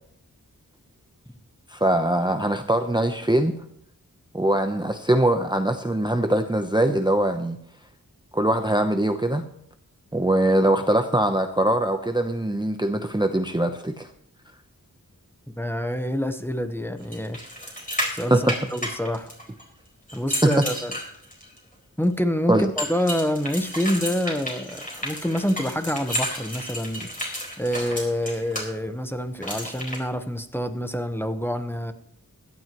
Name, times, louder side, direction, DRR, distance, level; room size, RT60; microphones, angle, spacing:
voice 1, 1.7-3.5 4.3-7.6 8.3-9.4 10.1-14.1 18.3-18.5 20.4-20.8 22.5-22.7, right 1 dB, 15° right, 6 dB, 0.8 m, -22 dB
voice 2, 15.6-17.4 18.1-19.3 20.1-20.9 22.0-27.1 27.6-31.9, equal, 5° left, 8 dB, 1.0 m, -27 dB
sound 1, 17.1-19.6 20.1-21.6 22.8-28.6 29.4-30.0, equal, 25° left, 4.5 m, -32 dB
17.0 x 12.0 x 3.0 m, 0.70 s
wide cardioid pair, 55°, 35 cm